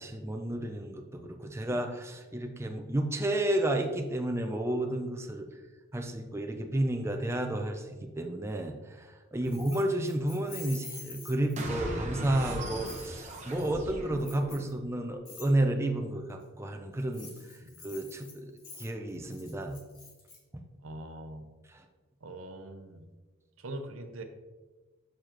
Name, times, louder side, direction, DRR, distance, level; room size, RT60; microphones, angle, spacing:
voice 1, 0.0-5.5 5.9-19.8 20.5-20.6 21.7-21.9, right 1 dB, 15° right, 4 dB, 0.5 m, -32 dB
Keys jangling, 9.4-11.8 12.8-13.1 14.2-14.7 15.2-15.5 17.0-20.4, left 4 dB, 85° left, 2.2 m, -47 dB
sound 1, 11.6-14.9, right 1 dB, 35° right, 1.0 m, -38 dB
voice 2, 20.8-21.5 22.2-23.1 23.6-24.2, right 1 dB, 90° right, 7 dB, 0.7 m, -43 dB
6.9 x 6.4 x 3.0 m, 1.3 s
head